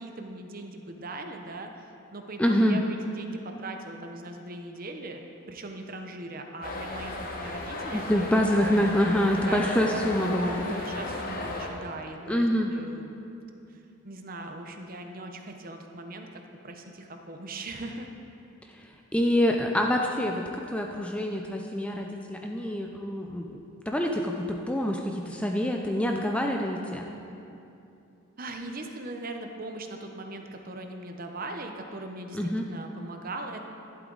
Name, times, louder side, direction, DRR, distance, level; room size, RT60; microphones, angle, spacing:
voice 1, 0.0-5.2 5.5-8.3 9.4-10.4 10.8-13.2 13.7-18.1 28.4-33.7, right 2 dB, 40° right, 4 dB, 0.8 m, -40 dB
voice 2, 2.4-2.8 7.9-10.8 12.3-12.7 19.1-23.6 23.9-27.1 32.3-32.7, equal, 5° left, 2 dB, 0.5 m, -26 dB
sound 1, 6.6-11.7, left 2 dB, 40° left, 1.1 m, -35 dB
11.5 x 11.5 x 4.0 m, 2.7 s
head